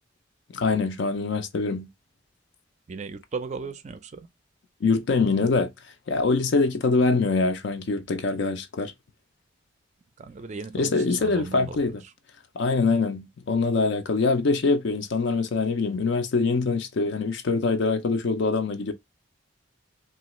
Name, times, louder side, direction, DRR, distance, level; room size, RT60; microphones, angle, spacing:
voice 1, 0.5-1.9 4.8-5.7 6.1-8.9 10.7-12.0 12.6-18.9, left 4 dB, 60° left, 0.4 m, -24 dB
voice 2, 2.9-4.3 10.2-12.1, right 4 dB, 35° right, 0.4 m, -37 dB
3.1 x 2.4 x 2.9 m
head